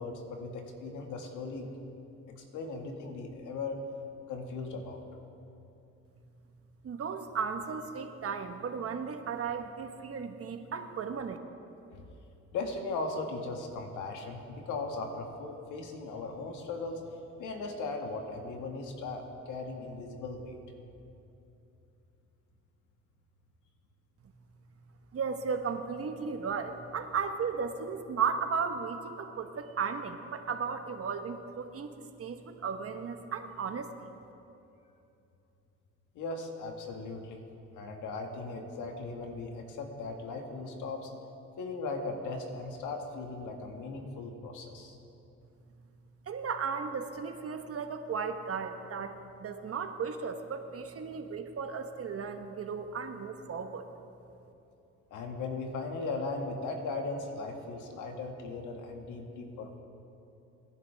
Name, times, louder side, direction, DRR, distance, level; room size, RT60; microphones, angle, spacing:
voice 1, 0.0-1.7 2.3-3.8 4.3-5.0 11.9-12.0 12.5-17.0 17.4-20.6 36.1-37.4 37.8-41.1 41.6-45.0 55.1-59.8, left 3 dB, 90° left, 3 dB, 1.8 m, -38 dB
voice 2, 6.8-11.4 25.1-33.9 46.3-53.9, right 6 dB, 50° right, 6 dB, 1.2 m, -35 dB
25.5 x 10.5 x 3.5 m, 2.8 s
cardioid pair, 90°, 30 cm